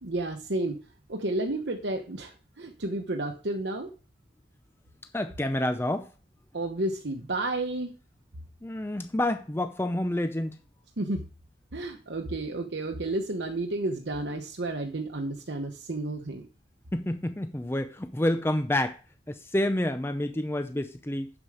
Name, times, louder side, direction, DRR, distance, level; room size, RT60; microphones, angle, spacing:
voice 1, 0.0-0.8 1.1-3.9 6.5-7.9 11.0-11.2 11.7-16.4, right 2 dB, 65° right, 1.0 m, -31 dB
voice 2, 5.1-6.1 8.6-10.6 16.9-19.0 19.3-21.3, left 1 dB, 10° left, 0.5 m, -28 dB
7.3 x 7.1 x 4.9 m
head